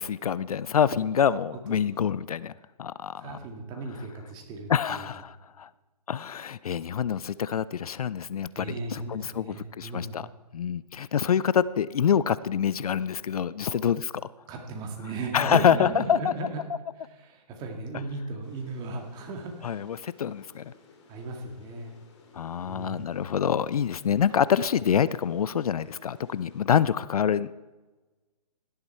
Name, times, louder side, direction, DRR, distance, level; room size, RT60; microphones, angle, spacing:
voice 1, 0.0-2.5 2.8-3.4 4.7-5.7 6.1-10.3 10.5-14.2 15.3-16.3 19.6-20.7 22.3-27.5, left 8 dB, 65° left, 0.5 m, -26 dB
voice 2, 3.2-5.1 8.6-10.2 13.7-13.8 14.5-16.6 17.2-19.8 21.1-21.9 22.7-23.1, right 2 dB, 20° right, 2.1 m, -36 dB
sound 1, 18.4-26.6, left 4 dB, 45° left, 3.0 m, -56 dB
17.0 x 11.5 x 4.4 m
hypercardioid pair, 145°, 21 cm